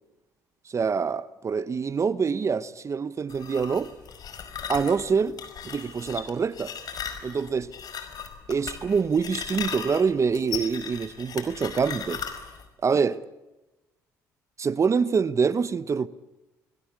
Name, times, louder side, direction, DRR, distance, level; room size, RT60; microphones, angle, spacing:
voice 1, 0.7-3.9 4.7-5.4 5.6-6.7 7.2-7.7 8.5-12.2 12.8-13.2 14.6-16.1, right 5 dB, 40° right, 1.1 m, -25 dB
sound 1, 3.3-12.6, left 7 dB, 55° left, 5.0 m, -37 dB
28.5 x 21.5 x 8.6 m
hypercardioid pair, 60°, 8 cm